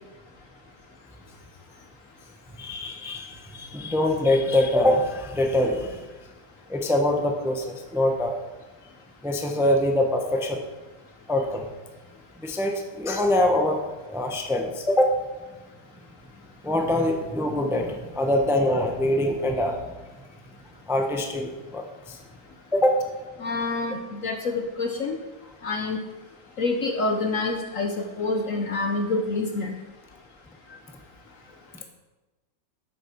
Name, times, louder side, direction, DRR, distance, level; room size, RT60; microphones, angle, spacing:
voice 1, 2.6-6.0 6.7-8.3 9.2-10.6 11.3-11.6 12.4-13.8 14.1-15.2 16.6-19.8 20.9-22.2 22.7-23.0, left 1 dB, ahead, 3 dB, 0.7 m, -24 dB
voice 2, 23.4-25.2 25.6-26.0 26.6-29.7, left 3 dB, 55° left, 4 dB, 1.0 m, -27 dB
8.6 x 8.5 x 5.8 m, 1.2 s
omnidirectional pair, 2.0 m